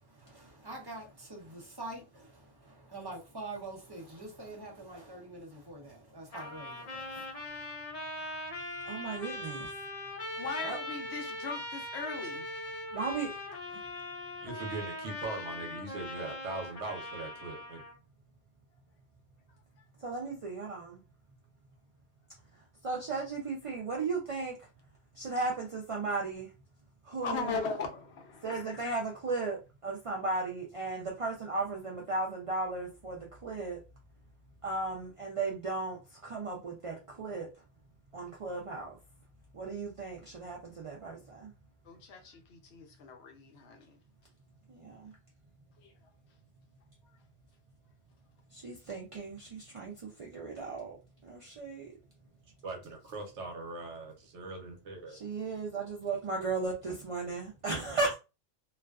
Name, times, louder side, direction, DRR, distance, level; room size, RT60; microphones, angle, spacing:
voice 1, 0.0-7.6, right 2 dB, 25° right, 0.6 m, -45 dB
Trumpet, 6.3-17.9, left 1 dB, 40° left, 0.7 m, -41 dB
voice 2, 8.8-9.7 10.6-10.8 12.9-13.3 20.0-21.0 22.8-24.6 25.2-26.5 27.1-27.6 28.4-33.8 34.6-36.0 36.2-37.5 38.1-38.9 39.5-41.5 44.7-45.1 48.5-51.0 51.2-51.9 55.1-58.2, right 3 dB, 60° right, 0.3 m, -35 dB
voice 3, 10.4-12.5 25.4-25.5 27.1-28.8 41.8-44.0 45.8-45.9, left 5 dB, 70° left, 0.9 m, -39 dB
voice 4, 14.4-17.8 52.6-55.2, right 3 dB, 80° right, 1.0 m, -40 dB
2.4 x 2.2 x 2.3 m
omnidirectional pair, 1.2 m